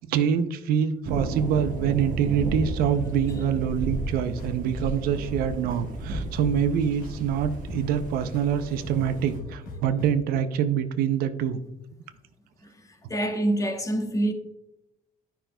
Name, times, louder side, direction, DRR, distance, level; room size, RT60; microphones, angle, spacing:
voice 1, 0.1-11.6, right 8 dB, 80° right, 0.5 m, -25 dB
sound 1, 1.0-9.4, right 2 dB, 60° right, 1.2 m, -33 dB
sound 2, 3.8-10.1, left 2 dB, 70° left, 1.3 m, -44 dB
voice 2, 13.1-14.3, right 1 dB, 20° left, 0.9 m, -25 dB
10.0 x 5.7 x 2.2 m
cardioid pair, 105°, 15 cm